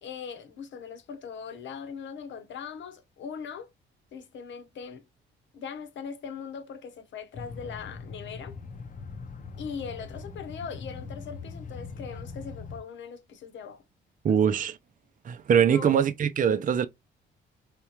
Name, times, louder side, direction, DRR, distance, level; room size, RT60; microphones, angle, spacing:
voice 1, 0.0-3.7 4.1-5.1 5.5-8.5 9.6-13.8 14.3-14.6 15.6-16.1 16.5-16.6, left 6 dB, 70° left, 1.0 m, -40 dB
sound 1, 7.3-12.8, left 4 dB, 40° left, 0.7 m, -41 dB
voice 2, 14.2-14.8 15.2-16.9, right 8 dB, 40° right, 0.6 m, -23 dB
4.3 x 3.6 x 2.9 m
cardioid pair, 90°, 20 cm